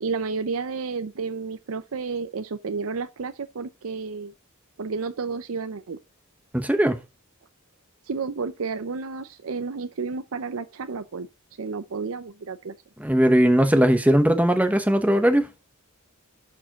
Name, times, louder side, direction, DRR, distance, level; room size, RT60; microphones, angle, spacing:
voice 1, 0.0-4.3 4.8-6.0 8.1-11.3 11.6-12.8, right 4 dB, 75° right, 0.6 m, -31 dB
voice 2, 6.5-7.0 13.0-15.5, equal, 5° right, 1.0 m, -19 dB
11.0 x 4.6 x 2.9 m
head